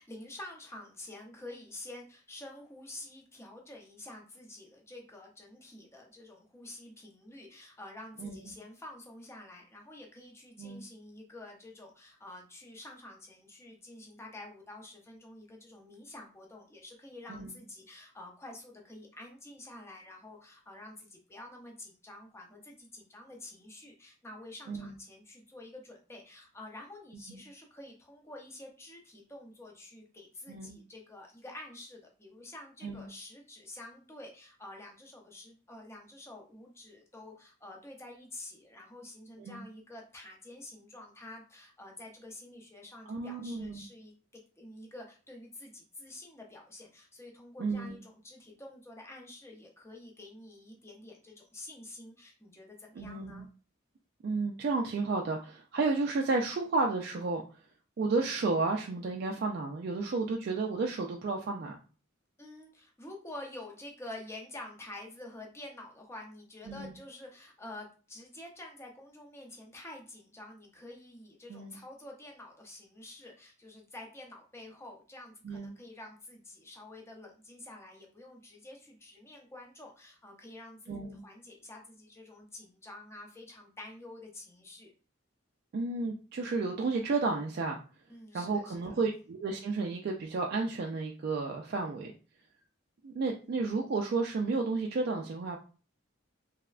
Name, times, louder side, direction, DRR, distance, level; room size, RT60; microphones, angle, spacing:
voice 1, 0.0-53.5 62.4-84.9 88.1-88.9, left 1 dB, 15° left, 1 dB, 0.5 m, -48 dB
voice 2, 43.1-43.8 47.6-48.0 53.0-53.5 54.2-57.4 58.0-61.8 66.7-66.9 71.5-71.8 75.4-75.7 80.9-81.2 85.7-87.8 88.3-92.1 93.0-95.6, right 3 dB, 50° right, 1 dB, 0.3 m, -32 dB
3.2 x 2.0 x 2.4 m, 0.36 s
head